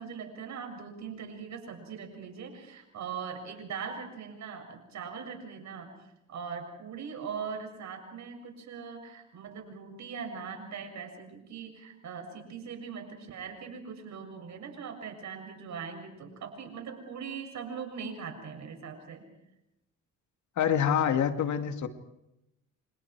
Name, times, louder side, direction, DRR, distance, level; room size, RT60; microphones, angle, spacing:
voice 1, 0.0-5.9 6.3-19.2, right 6 dB, 65° right, 4 dB, 7.3 m, -41 dB
voice 2, 20.6-21.9, left 8 dB, 70° left, 8 dB, 2.3 m, -26 dB
29.5 x 27.0 x 4.8 m, 0.87 s
cardioid pair, 90°, 30 cm